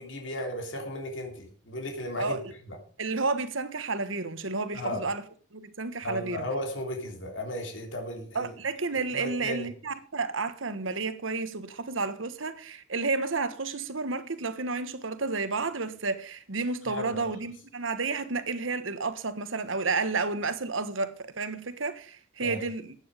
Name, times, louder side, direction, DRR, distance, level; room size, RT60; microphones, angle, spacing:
voice 1, 0.0-2.8 4.7-5.0 6.0-8.5 9.1-9.7 16.9-17.3 22.4-22.6, left 1 dB, 70° left, 3.5 m, -35 dB
voice 2, 3.0-5.2 5.5-6.4 8.3-22.9, right 3 dB, 85° right, 1.4 m, -31 dB
14.5 x 9.6 x 5.1 m
head